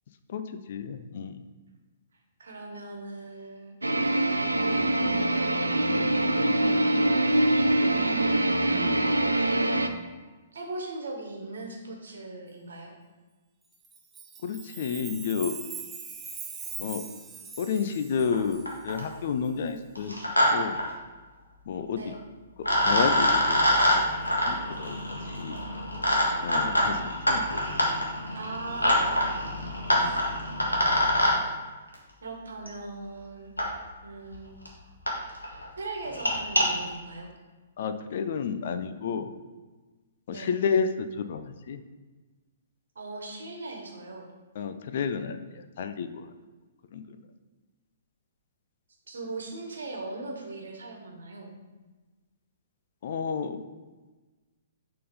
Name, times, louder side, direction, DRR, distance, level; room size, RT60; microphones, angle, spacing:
voice 1, 0.7-1.4 8.7-9.0 14.4-15.5 16.8-17.0 17.6-20.2 20.5-20.8 21.7-22.1 22.8-23.6 23.9-24.1 24.4-25.0 25.4-25.6 26.4-27.0 27.3-27.4 30.0-30.2 37.8-39.3 40.3-41.8 44.6-46.2 46.9-47.0 53.0-53.6, left 6 dB, 50° left, 9 dB, 0.4 m, -30 dB
voice 2, 2.4-4.2 4.5-5.2 10.5-12.9 21.9-22.2 28.3-30.2 32.2-33.5 34.0-34.5 34.8-34.9 35.8-37.3 40.3-40.5 42.9-44.3 49.1-51.5, right 2 dB, 65° right, 1 dB, 1.3 m, -40 dB
sound 1, 3.8-9.9, right 1 dB, 80° right, 0.5 m, -24 dB
Chime, 13.8-19.0, right 5 dB, 15° right, 0.6 m, -41 dB
sound 2, 18.3-18.4 18.7-19.1 19.9-20.5 20.7-20.8 22.1-22.2 22.6-31.3 32.7-32.8 33.6-33.7 34.3-34.4 34.6-34.7 35.1-35.2 35.4-35.6 36.0-36.6, left 1 dB, 85° left, 1.4 m, -25 dB
6.6 x 3.8 x 5.1 m, 1.3 s
figure-of-eight pair, 120°, 0 cm